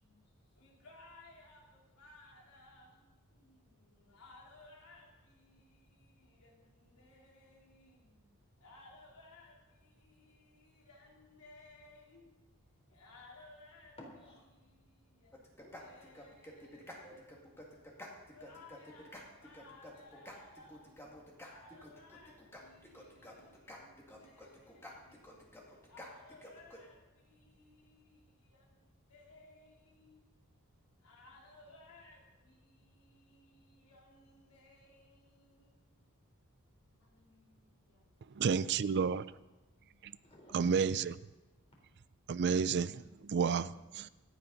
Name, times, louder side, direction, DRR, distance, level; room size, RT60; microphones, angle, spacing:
voice 1, 0.0-0.4 14.1-14.5 15.5-15.9 17.0-17.2 33.8-33.9 40.2-40.9 41.6-41.7, equal, 30° left, 4.0 m, -57 dB
voice 2, 0.6-8.3 8.6-12.4 12.9-14.0 14.5-25.6 25.9-30.4 31.0-36.1 37.0-38.1, left 2 dB, 80° left, 3.6 m, -60 dB
sound 1, 15.3-26.8, left 1 dB, 10° left, 2.3 m, -51 dB
voice 3, 38.3-39.3 40.0-40.1 40.5-41.1 42.3-44.1, right 6 dB, 50° right, 0.4 m, -31 dB
27.0 x 9.2 x 4.1 m
head